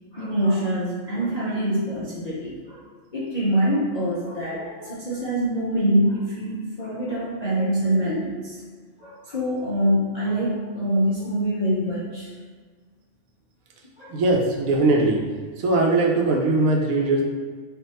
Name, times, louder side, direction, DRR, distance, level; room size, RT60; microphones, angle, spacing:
voice 1, 0.1-2.8 3.1-8.6 9.0-12.3 14.0-14.2, right 1 dB, 50° left, -8 dB, 0.5 m, -25 dB
voice 2, 14.1-15.3 15.6-17.2, right 2 dB, 75° right, 1 dB, 1.0 m, -20 dB
3.3 x 2.5 x 4.1 m, 1.6 s
omnidirectional pair, 1.5 m